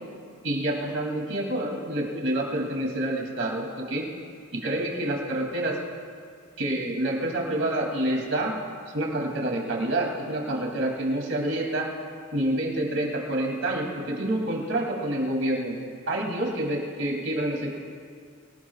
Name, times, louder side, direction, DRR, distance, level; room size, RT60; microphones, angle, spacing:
voice 1, 0.4-4.1 4.5-5.8 6.6-8.5 8.9-11.9 12.3-15.8 16.1-17.8, right 1 dB, 60° right, -1 dB, 2.9 m, -28 dB
24.5 x 18.5 x 2.4 m, 2.2 s
head